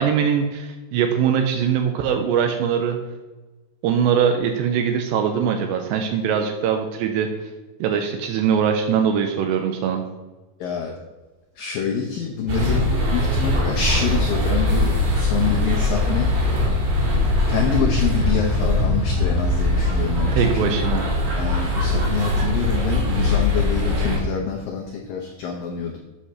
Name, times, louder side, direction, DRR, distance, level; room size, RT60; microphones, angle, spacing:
voice 1, 0.0-3.0 3.8-7.3 7.8-10.0 20.3-21.0, right 7 dB, 85° right, 5 dB, 2.8 m, -21 dB
voice 2, 10.6-11.0 11.6-16.8 17.5-20.7 21.4-26.0, left 6 dB, 80° left, 0 dB, 2.0 m, -26 dB
sound 1, 12.5-24.2, left 1 dB, 65° right, 4.1 m, -21 dB
8.4 x 5.5 x 6.3 m, 1.2 s
omnidirectional pair, 5.2 m